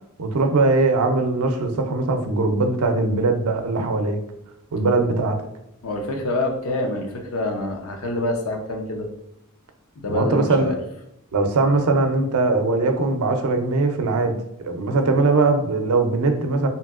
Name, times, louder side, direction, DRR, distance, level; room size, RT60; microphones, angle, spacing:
voice 1, 0.2-4.2 4.7-5.4 10.1-10.7 11.3-16.7, right 3 dB, 85° right, 6 dB, 0.4 m, -21 dB
voice 2, 5.8-9.1 10.0-10.8, left 2 dB, 80° left, 2 dB, 0.6 m, -26 dB
2.8 x 2.6 x 2.4 m, 0.79 s
head